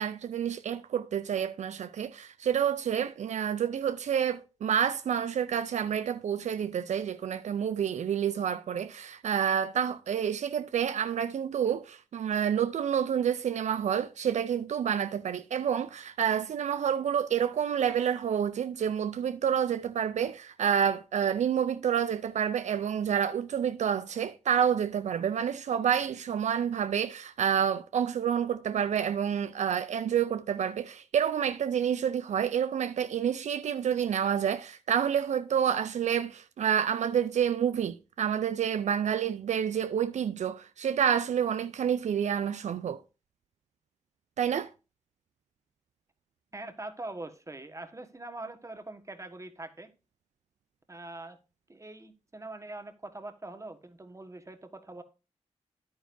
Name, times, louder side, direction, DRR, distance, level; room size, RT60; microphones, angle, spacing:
voice 1, 0.0-43.0 44.4-44.7, right 8 dB, 80° right, 0.4 m, -28 dB
voice 2, 46.5-49.9 50.9-51.4 51.7-55.0, right 2 dB, 25° right, 1.3 m, -43 dB
10.0 x 9.2 x 2.6 m
cardioid pair, 55°, 12 cm